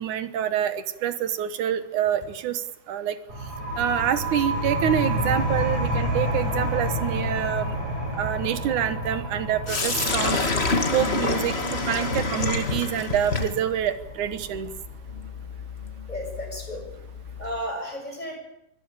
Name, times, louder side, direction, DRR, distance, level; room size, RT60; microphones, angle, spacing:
voice 1, 0.0-3.2 3.8-7.8 8.1-10.4 10.9-14.7, right 10 dB, 65° right, 11 dB, 2.1 m, -26 dB
sound 1, 3.3-14.7, equal, 45° right, 7.5 m, -30 dB
Sink (filling or washing), 9.7-17.6, left 3 dB, 80° left, 0.5 m, -28 dB
voice 2, 16.1-16.8 17.4-18.4, equal, 10° left, 1 dB, 7.2 m, -33 dB
24.5 x 18.0 x 8.9 m, 0.85 s
omnidirectional pair, 4.8 m